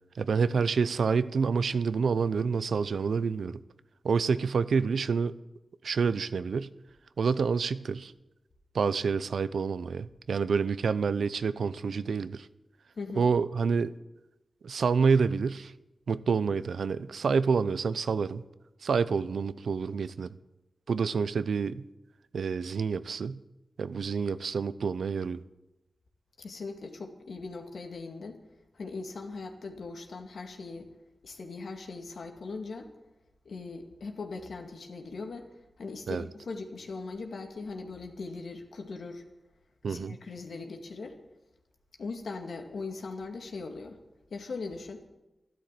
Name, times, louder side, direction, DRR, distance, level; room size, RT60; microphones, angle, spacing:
voice 1, 0.2-3.6 4.0-5.3 5.8-6.7 7.2-8.1 8.7-12.5 13.2-13.9 14.6-15.7 16.1-18.4 18.8-20.3 20.9-21.8 22.3-23.4 23.8-25.4 36.1-36.2 39.8-40.2, right 5 dB, 85° right, 0.6 m, -28 dB
voice 2, 13.0-13.3 26.4-28.4 28.7-30.9 31.2-32.9 33.4-35.5 35.8-39.2 39.9-41.2 42.0-44.0 44.3-45.0, left 3 dB, 80° left, 2.2 m, -40 dB
13.0 x 12.0 x 7.6 m
wide cardioid pair, 75°, 0 cm